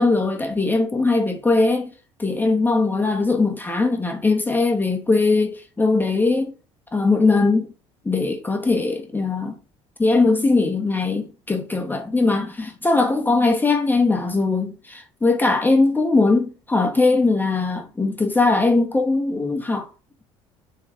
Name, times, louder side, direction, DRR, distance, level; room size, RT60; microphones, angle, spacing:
voice 1, 0.0-1.9 2.2-6.5 6.9-7.7 8.0-9.5 10.0-19.9, left 3 dB, 10° left, 1.0 m, -20 dB
3.7 x 3.1 x 3.4 m
hypercardioid pair, 65°, 15 cm